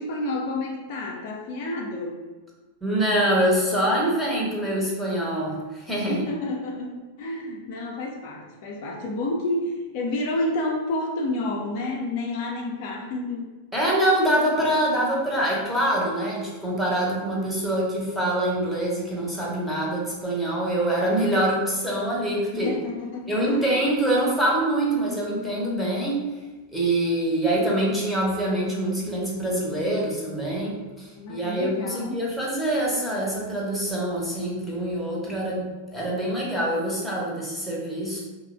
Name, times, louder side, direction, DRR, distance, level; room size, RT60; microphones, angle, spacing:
voice 1, 0.0-2.2 6.1-13.6 22.5-23.8 31.1-32.2, left 2 dB, 45° left, 0 dB, 0.4 m, -30 dB
voice 2, 2.8-6.2 13.7-22.7 23.3-26.3 26.7-38.2, right 1 dB, ahead, -5 dB, 0.7 m, -25 dB
3.0 x 2.0 x 2.4 m, 1.2 s
figure-of-eight pair, 90°, 0 cm